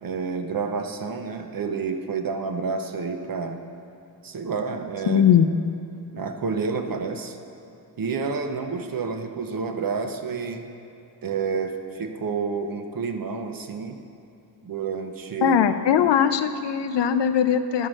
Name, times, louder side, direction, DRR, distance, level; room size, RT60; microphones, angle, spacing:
voice 1, 0.0-3.6 4.2-5.2 6.1-7.4 8.0-10.7 11.2-14.0 14.6-15.6, right 5 dB, 50° right, 6 dB, 0.8 m, -29 dB
voice 2, 5.1-5.5 15.4-17.9, left 8 dB, 75° left, 10 dB, 0.6 m, -20 dB
13.5 x 4.6 x 6.3 m, 2.6 s
wide cardioid pair, 105°, 43 cm